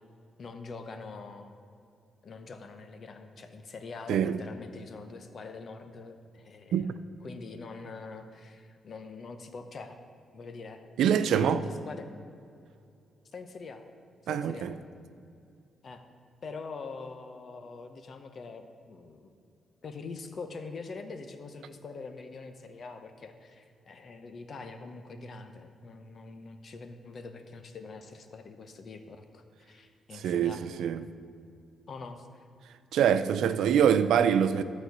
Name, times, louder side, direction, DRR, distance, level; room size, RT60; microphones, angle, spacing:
voice 1, 0.4-1.6 2.2-6.9 7.2-10.0 10.3-10.8 11.2-12.1 13.3-13.8 14.2-14.7 15.8-16.1 16.4-19.3 19.8-30.6 31.9-32.4, left 4 dB, 45° left, 0.8 m, -44 dB
voice 2, 11.0-11.6 14.3-14.7 30.1-31.1 32.9-34.6, right 8 dB, 85° right, 0.4 m, -25 dB
12.0 x 4.4 x 8.0 m
cardioid pair, 135°, 0 cm